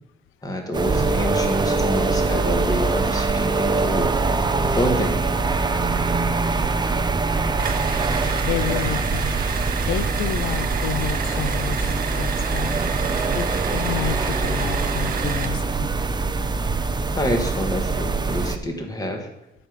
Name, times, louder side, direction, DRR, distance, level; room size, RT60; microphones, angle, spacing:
voice 1, 0.4-4.1 4.7-5.2 17.1-19.3, equal, 20° left, 3 dB, 2.1 m, -27 dB
sound 1, 0.7-18.6, right 3 dB, 20° right, 0.9 m, -23 dB
sound 2, 7.6-15.6, right 7 dB, 45° right, 0.8 m, -32 dB
voice 2, 8.4-9.4 9.8-11.9 12.2-12.8 13.3-15.9, left 12 dB, 85° left, 16 dB, 0.6 m, -30 dB
11.0 x 5.2 x 8.0 m, 0.88 s
cardioid pair, 90°, 20 cm